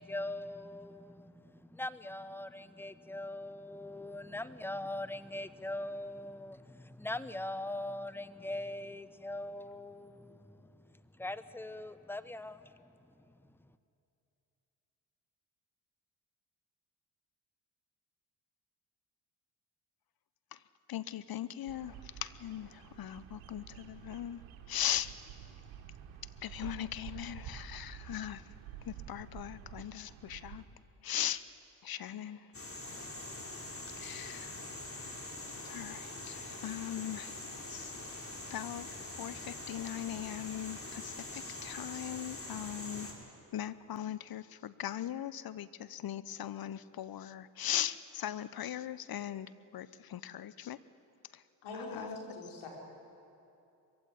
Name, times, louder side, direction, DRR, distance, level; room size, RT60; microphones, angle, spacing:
voice 1, 0.0-13.7, left 1 dB, 5° left, 14 dB, 1.0 m, -42 dB
voice 2, 20.9-24.4 24.7-25.1 26.4-28.4 28.8-30.6 31.0-31.4 31.8-32.5 34.0-34.6 35.6-37.4 37.7-37.9 38.5-38.9 39.2-43.1 43.5-50.8 51.3-51.4 51.7-52.2, left 11 dB, 45° left, 16 dB, 0.9 m, -39 dB
Bird vocalization bird call bird song, 21.7-30.7, right 9 dB, 70° right, 1.9 m, -49 dB
sound 1, 32.5-43.1, left 2 dB, 25° left, 4.2 m, -44 dB
voice 3, 51.6-52.7, left 3 dB, 70° left, -1 dB, 5.5 m, -42 dB
22.0 x 15.5 x 9.9 m, 2.8 s
hypercardioid pair, 50°, 50 cm